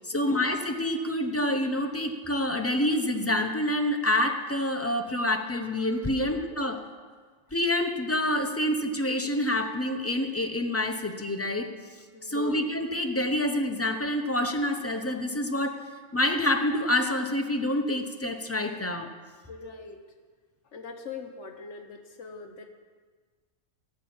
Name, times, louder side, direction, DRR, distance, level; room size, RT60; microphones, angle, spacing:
voice 1, 0.1-6.8 7.5-11.7 12.2-15.8 16.1-19.1, left 1 dB, 15° left, 4 dB, 0.5 m, -27 dB
voice 2, 6.2-6.6 12.1-12.6 19.5-20.0 20.7-22.7, left 5 dB, 60° left, 5 dB, 1.1 m, -43 dB
13.5 x 6.1 x 8.6 m, 1.5 s
omnidirectional pair, 1.5 m